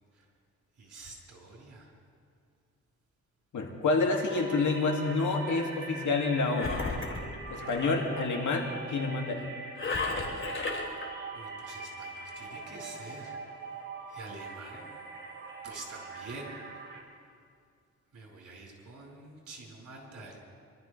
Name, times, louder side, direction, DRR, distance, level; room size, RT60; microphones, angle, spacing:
voice 1, 0.8-1.9 11.3-13.4 14.1-14.8 15.6-16.6 18.1-20.4, right 2 dB, 70° right, -2 dB, 4.8 m, -46 dB
voice 2, 3.5-6.8 7.5-9.5, left 3 dB, 70° left, 1 dB, 2.3 m, -28 dB
sound 1, 4.1-17.0, right 4 dB, 40° right, 2.8 m, -43 dB
Engine, 6.5-8.0 9.8-11.1, left 3 dB, 40° left, 2.6 m, -34 dB
25.5 x 13.0 x 3.3 m, 2.3 s
cardioid pair, 90°, 31 cm